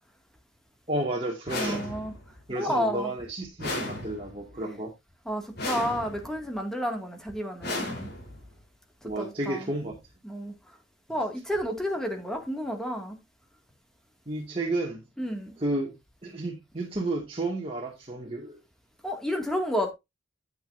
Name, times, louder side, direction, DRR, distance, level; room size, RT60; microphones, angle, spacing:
voice 1, 0.9-1.9 2.5-4.9 9.0-10.0 14.3-15.0 15.6-15.9 16.2-18.6, right 2 dB, 30° right, 2.2 m, -32 dB
sound 1, 1.5-2.3 3.6-4.5 5.6-6.4 7.6-8.5, left 2 dB, 60° left, 4.0 m, -34 dB
voice 2, 1.6-2.1 2.5-3.1 5.3-8.1 9.0-9.7 10.2-10.5 11.1-13.2 15.2-15.6 19.0-19.9, equal, 5° left, 2.3 m, -31 dB
10.0 x 9.2 x 2.7 m
head